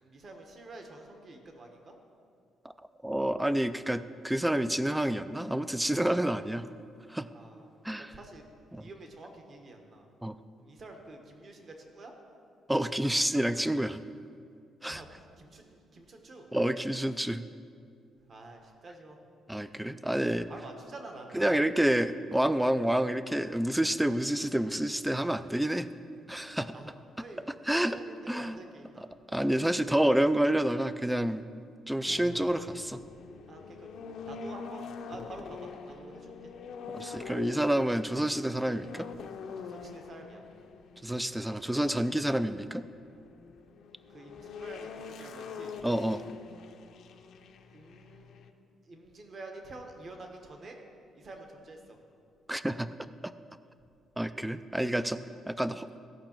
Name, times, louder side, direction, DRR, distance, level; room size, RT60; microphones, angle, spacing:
voice 1, 0.0-1.9 7.3-7.7 7.9-8.5 8.8-10.1 10.6-12.1 14.9-16.5 18.3-19.2 20.5-21.5 26.7-29.1 33.5-33.9 34.3-36.5 39.6-40.4 44.1-45.7 47.7-48.3 48.9-50.8 51.1-52.0 53.6-53.7 55.3-55.4, right 2 dB, 40° right, 3 dB, 1.2 m, -48 dB
voice 2, 3.0-6.7 7.1-7.3 7.8-8.2 8.7-8.9 10.2-10.4 12.7-14.0 14.8-15.0 16.5-17.4 19.5-20.5 21.3-25.9 26.3-26.7 27.7-28.0 28.3-28.6 29.3-31.5 31.9-33.0 36.9-39.1 41.0-42.8 45.8-46.2 52.5-52.9 53.2-53.3 54.2-55.2 55.5-55.9, right 1 dB, 5° right, 13 dB, 0.3 m, -28 dB
sound 1, 32.1-48.5, left 5 dB, 70° left, 0.7 m, -44 dB
15.5 x 5.8 x 4.4 m, 2.4 s
cardioid pair, 115°, 0 cm